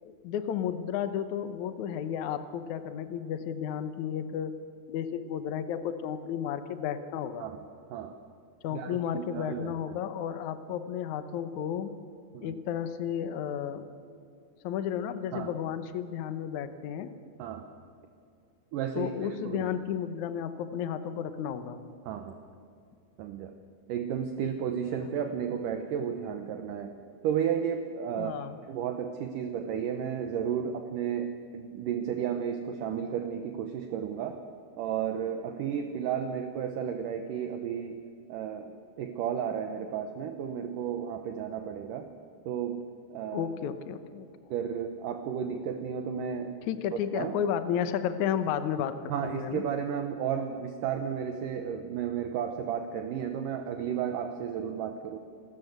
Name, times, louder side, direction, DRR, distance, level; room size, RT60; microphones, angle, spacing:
voice 1, 0.0-4.5 4.9-7.5 8.6-11.9 12.4-13.9 14.6-17.1 18.9-21.8 28.2-28.6 43.3-44.3 46.6-49.6, left 9 dB, 90° left, 11 dB, 1.6 m, -33 dB
voice 2, 8.7-10.0 12.3-12.6 15.3-15.5 17.4-17.6 18.7-19.1 19.4-19.7 22.1-22.4 23.2-23.6 23.9-27.0 27.2-28.3 28.7-34.4 34.8-38.0 38.3-42.1 42.5-42.8 43.1-43.5 44.5-46.5 47.1-47.3 49.1-55.2, right 8 dB, 75° right, 6 dB, 2.0 m, -33 dB
29.0 x 13.5 x 8.0 m, 2.5 s
omnidirectional pair, 5.0 m